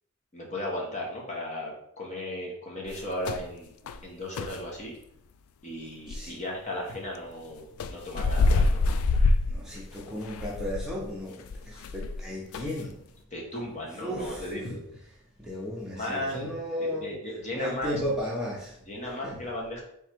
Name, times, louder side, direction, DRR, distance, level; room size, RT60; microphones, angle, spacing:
voice 1, 0.3-3.7 4.0-5.0 5.6-8.8 13.3-14.8 15.9-16.5 16.8-17.9 18.9-19.8, left 1 dB, 35° left, -2 dB, 1.0 m, -35 dB
sound 1, 2.9-3.5 3.9-4.0 4.4-4.6 6.1-6.2 7.8-12.2 12.5-12.8, left 3 dB, 75° left, 0.3 m, -26 dB
voice 2, 6.1-6.4 9.5-13.0 13.5-13.7 14.0-14.7 15.4-17.1 17.5-18.8 19.2-19.4, equal, 5° right, -5 dB, 0.8 m, -34 dB
3.5 x 3.2 x 4.4 m, 0.74 s
head